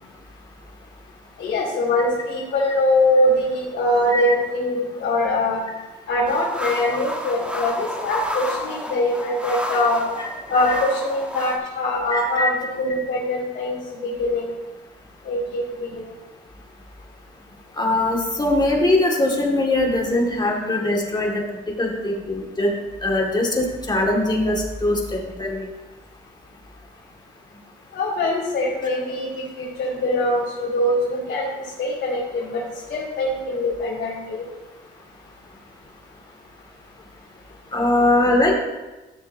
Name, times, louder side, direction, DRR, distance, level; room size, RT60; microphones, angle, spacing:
voice 1, 1.4-5.6 6.1-10.0 10.5-14.5 15.2-16.1 27.9-31.5 31.8-32.6 32.9-34.4, left 1 dB, 70° left, -8 dB, 2.7 m, -23 dB
sound 1, 6.2-11.6, left 1 dB, 5° right, 1.3 m, -31 dB
voice 2, 12.1-12.5 17.8-21.4 21.8-22.7 23.0-25.7 37.7-38.5, left 2 dB, 20° left, -1 dB, 2.0 m, -21 dB
13.5 x 6.8 x 2.7 m, 1.1 s
cardioid pair, 90°, 20 cm